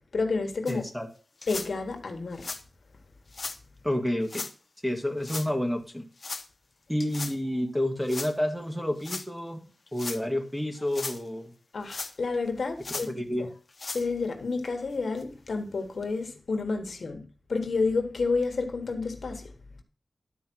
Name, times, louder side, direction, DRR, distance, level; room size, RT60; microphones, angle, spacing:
voice 1, 0.1-0.8 1.5-2.5 11.7-13.1 13.4-13.5 13.9-19.5, left 4 dB, 70° left, 1.4 m, -30 dB
sound 1, 0.7-0.8 1.4-1.7 2.3-2.6 3.3-3.6 4.2-4.5 5.2-5.5 6.2-6.5 7.0-7.3 8.1-8.3 9.0-9.2 9.9-10.2 10.7-11.2 11.9-12.4 12.8-13.1 13.7-14.0 14.6-14.7 15.2-15.3 16.0-16.1, left 3 dB, 45° left, 0.9 m, -36 dB
voice 2, 0.7-1.1 3.8-4.4 4.8-6.1 6.9-9.6 9.9-11.5 12.9-13.5, left 1 dB, ahead, 1.5 m, -29 dB
11.5 x 4.6 x 6.1 m
wide cardioid pair, 115°, 0 cm